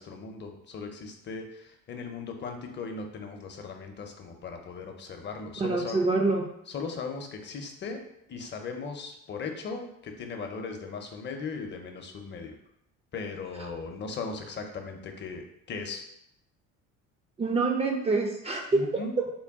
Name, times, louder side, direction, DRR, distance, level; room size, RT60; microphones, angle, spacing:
voice 1, 0.0-6.0 6.7-8.0 8.3-12.5 13.1-15.4 15.7-16.0 18.5-19.1, left 4 dB, 40° left, 4 dB, 0.6 m, -38 dB
voice 2, 5.6-6.5 17.4-19.3, right 3 dB, 20° right, 2 dB, 0.3 m, -26 dB
3.8 x 2.1 x 3.5 m, 0.75 s
cardioid pair, 100°, 29 cm